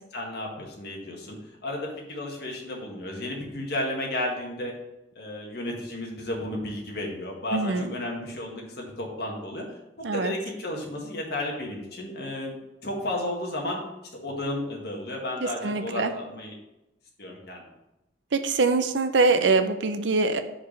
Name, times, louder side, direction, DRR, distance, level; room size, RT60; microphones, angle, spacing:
voice 1, 0.1-1.4 1.6-4.7 5.2-9.6 10.0-12.6 12.8-13.8 14.2-16.6 17.2-17.6, left 1 dB, 60° left, -1 dB, 1.7 m, -33 dB
voice 2, 7.5-7.9 10.0-10.3 15.4-16.1 18.3-20.4, right 3 dB, 75° right, 9 dB, 0.6 m, -23 dB
5.1 x 4.9 x 6.1 m, 0.90 s
head